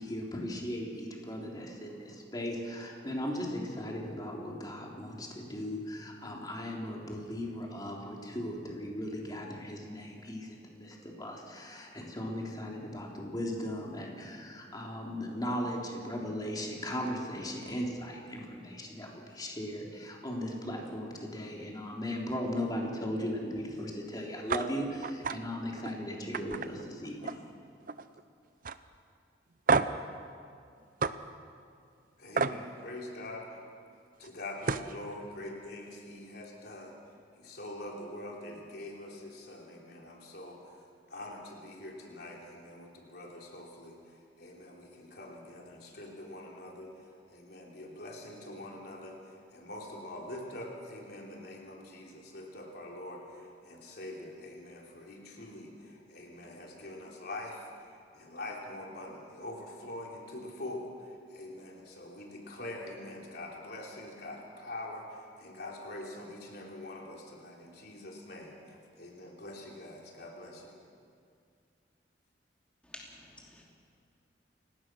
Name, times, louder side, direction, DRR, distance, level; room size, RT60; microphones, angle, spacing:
voice 1, 0.0-27.4, equal, 25° left, -1 dB, 3.6 m, -37 dB
sound 1, 24.5-24.7 25.0-25.4 25.8-25.9 26.3-27.5 27.8-28.2 28.6-28.8 29.7-30.0 31.0-31.1 32.4-32.6 34.2-34.3 34.6-34.9, right 4 dB, 50° right, 0.7 m, -29 dB
voice 2, 32.2-33.6 34.2-36.9 37.4-40.8 41.1-44.0 44.4-57.7 58.1-70.7, left 1 dB, 65° left, -1 dB, 3.8 m, -44 dB
voice 3, 72.8-73.6, left 1 dB, 5° left, -3 dB, 2.9 m, -50 dB
29.0 x 18.0 x 6.3 m, 2.3 s
head